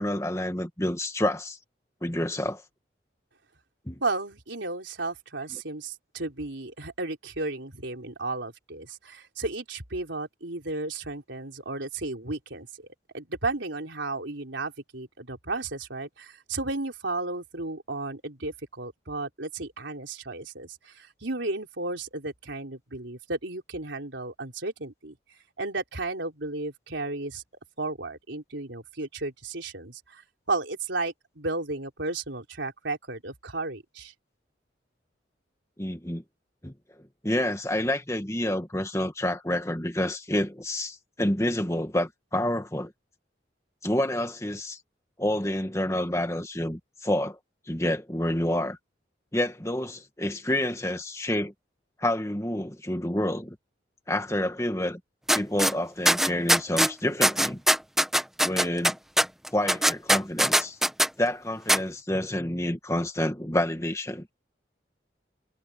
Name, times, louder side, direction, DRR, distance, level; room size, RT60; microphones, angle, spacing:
voice 1, 0.0-1.6 2.0-2.6 3.9-4.0 5.5-5.6 35.8-36.2 36.6-42.9 43.8-44.8 45.2-47.4 47.7-48.8 49.3-51.5 52.0-53.5 54.1-55.0 55.3-57.6 58.4-59.0 59.5-60.8 61.2-64.3, left 1 dB, 15° left, 1.7 m, -28 dB
voice 2, 4.0-12.9 13.1-25.2 25.6-27.4 27.8-30.2 30.5-34.1, right 3 dB, 90° right, 4.2 m, -33 dB
sound 1, 55.3-55.7 56.1-56.9 57.2-61.1 61.7-61.8, right 1 dB, ahead, 1.3 m, -21 dB
head